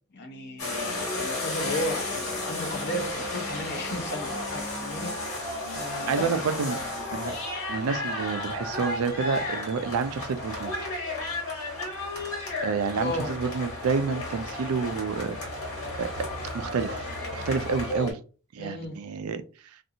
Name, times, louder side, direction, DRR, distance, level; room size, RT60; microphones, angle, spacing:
voice 1, 0.1-5.1 5.7-7.0 13.0-13.3 18.6-19.0, left 1 dB, 50° left, 0.6 m, -34 dB
sound 1, 0.6-18.1, left 2 dB, 85° left, 1.4 m, -33 dB
voice 2, 6.1-6.8 7.1-7.4 7.7-10.7 12.6-15.4 16.0-16.1 16.5-18.2 18.5-19.4, right 5 dB, 80° right, 0.4 m, -29 dB
2.6 x 2.4 x 2.7 m
head